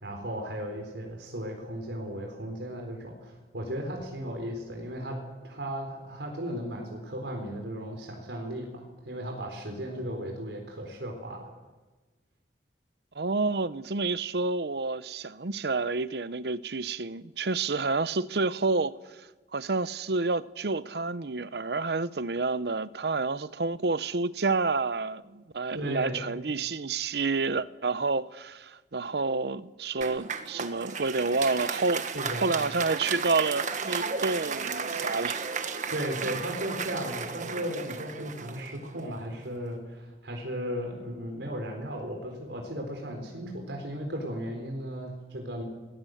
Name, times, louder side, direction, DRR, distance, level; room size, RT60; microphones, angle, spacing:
voice 1, 0.0-11.5 25.7-26.3 32.1-32.5 35.9-45.6, equal, 90° right, 4.2 m, -36 dB
voice 2, 13.1-32.1 32.4-35.4 36.2-36.4, right 3 dB, 65° right, 0.8 m, -29 dB
Applause, 30.0-39.3, right 5 dB, 45° right, 1.5 m, -34 dB
26.5 x 20.0 x 8.0 m
head